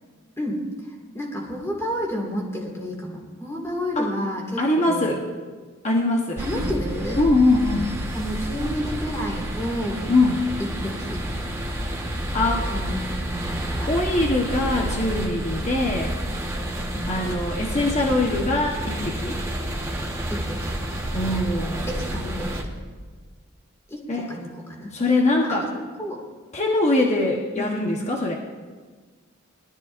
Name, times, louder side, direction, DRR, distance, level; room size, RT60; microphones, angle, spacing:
voice 1, 0.4-0.7 1.1-5.1 6.4-7.2 8.1-10.1 10.6-11.2 12.7-13.9 16.8-17.1 18.0-18.6 20.3-20.7 21.7-22.6 23.9-24.9 25.4-25.7 26.0-26.2 27.5-27.9, equal, 15° left, -1 dB, 2.1 m, -31 dB
voice 2, 4.6-5.2 5.8-6.4 7.2-7.9 10.1-10.4 12.3-12.7 13.9-16.1 17.1-19.4 21.1-21.8 24.1-24.3 24.9-25.7 26.5-28.4, left 2 dB, 30° left, -1 dB, 1.1 m, -22 dB
sound 1, 6.4-22.6, right 1 dB, 15° right, 1.2 m, -29 dB
21.5 x 13.0 x 2.6 m, 1.5 s
head